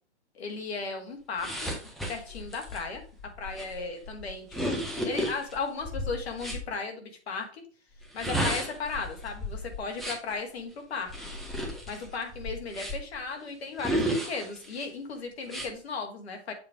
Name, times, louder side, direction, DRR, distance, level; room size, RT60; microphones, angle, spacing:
voice 1, 0.3-1.7 2.1-3.0 3.4-4.8 5.0-7.6 8.1-11.1 11.9-16.5, left 4 dB, 60° left, 4 dB, 2.1 m, -36 dB
sound 1, 1.4-6.7 8.0-10.3 11.1-13.2 13.8-14.8 15.5-15.7, equal, ahead, 0.8 m, -33 dB
7.4 x 3.2 x 4.8 m, 0.39 s
hypercardioid pair, 130°, 35 cm